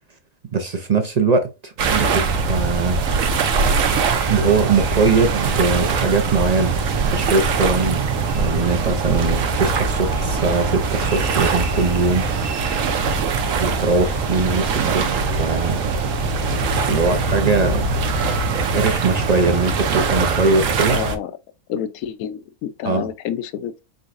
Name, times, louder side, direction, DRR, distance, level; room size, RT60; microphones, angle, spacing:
voice 1, 0.5-3.0 4.3-8.0 8.3-12.4 13.6-15.9 16.8-17.8 18.7-21.0 22.8-23.1, right 4 dB, 50° right, 0.5 m, -21 dB
sound 1, 1.8-21.2, right 4 dB, 65° right, 1.1 m, -22 dB
sound 2, 3.1-20.7, right 6 dB, 90° right, 1.4 m, -33 dB
voice 2, 20.9-21.3 21.7-23.8, left 9 dB, 75° left, 1.1 m, -28 dB
4.5 x 3.9 x 2.5 m
omnidirectional pair, 1.5 m